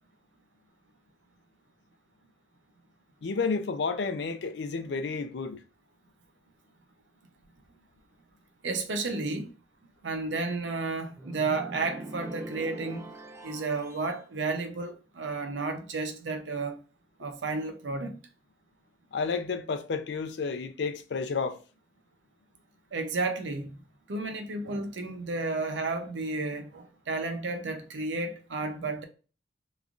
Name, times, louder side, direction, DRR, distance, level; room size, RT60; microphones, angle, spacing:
voice 1, 3.2-5.6 19.1-21.6, left 4 dB, 70° left, 0.4 m, -31 dB
voice 2, 8.6-9.5 10.0-13.1 13.4-16.8 17.2-18.2 22.9-23.7 24.1-29.0, right 3 dB, 85° right, 0.6 m, -32 dB
sound 1, 11.2-14.2, right 2 dB, 15° right, 0.3 m, -43 dB
3.1 x 2.5 x 3.6 m
head